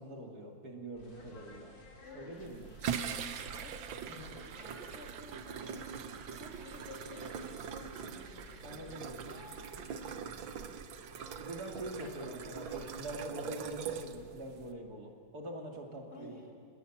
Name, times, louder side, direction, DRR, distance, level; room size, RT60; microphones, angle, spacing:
voice 1, 0.0-1.7 2.1-2.7 4.1-4.3 8.6-9.2 11.4-16.5, right 1 dB, 55° right, 1 dB, 3.0 m, -44 dB
sound 1, 1.0-13.2, left 2 dB, 75° left, 4.3 m, -56 dB
voice 2, 2.0-3.0 3.6-11.1 16.1-16.5, left 2 dB, 35° left, 0 dB, 3.5 m, -54 dB
sound 2, 2.4-14.7, right 7 dB, 85° right, 1.8 m, -42 dB
29.0 x 21.0 x 7.3 m, 2.4 s
omnidirectional pair, 2.1 m